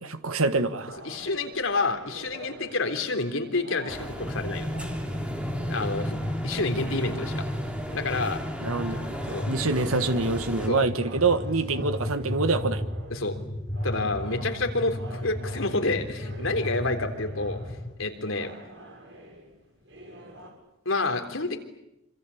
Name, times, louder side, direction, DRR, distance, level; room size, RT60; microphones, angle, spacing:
voice 1, 0.0-1.0 8.6-9.0 9.3-12.8, right 3 dB, 90° right, 10 dB, 1.6 m, -26 dB
sound 1, 0.9-20.5, right 1 dB, 60° right, 7.2 m, -47 dB
voice 2, 1.0-4.7 5.7-6.2 6.4-7.4 7.9-8.4 9.3-9.5 10.7-10.8 13.1-13.4 13.8-17.6 18.0-18.5 20.9-21.6, left 3 dB, 75° left, 6 dB, 3.7 m, -28 dB
sound 2, 3.9-10.7, equal, 5° right, 3.3 m, -37 dB
sound 3, 4.2-17.9, left 1 dB, 20° left, 1.8 m, -34 dB
26.5 x 26.0 x 8.6 m, 0.86 s
head